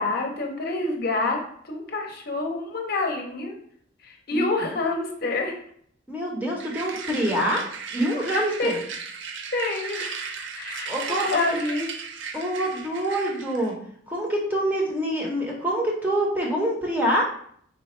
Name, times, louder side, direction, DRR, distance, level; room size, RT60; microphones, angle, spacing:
voice 1, 0.0-1.4 1.6-3.5 4.0-5.5 8.3-8.8 9.5-10.1 10.6-11.9, left 3 dB, 55° left, 2 dB, 0.7 m, -27 dB
voice 2, 6.1-7.6 7.9-8.8 10.9-11.4 12.3-13.7 14.1-17.2, right 1 dB, 10° right, -2 dB, 0.8 m, -25 dB
sound 1, 6.6-13.7, right 5 dB, 70° right, 0.5 m, -36 dB
4.0 x 2.3 x 4.3 m, 0.62 s
head